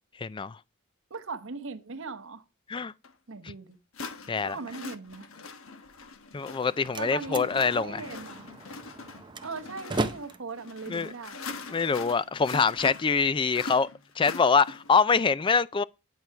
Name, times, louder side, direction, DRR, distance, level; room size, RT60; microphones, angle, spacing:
voice 1, 0.2-0.6 2.7-2.9 4.3-4.6 6.3-8.0 10.9-11.1 11.7-13.9 14.2-15.8, left 5 dB, 25° left, 0.4 m, -24 dB
voice 2, 1.1-2.4 3.3-3.8 4.4-5.3 7.0-8.5 9.4-11.4, right 4 dB, 65° right, 1.0 m, -39 dB
sound 1, 3.0-3.1 3.9-15.0, left 4 dB, 70° left, 1.2 m, -43 dB
Slam, 6.4-12.3, right 2 dB, 20° right, 0.7 m, -38 dB
10.5 x 4.7 x 5.7 m
head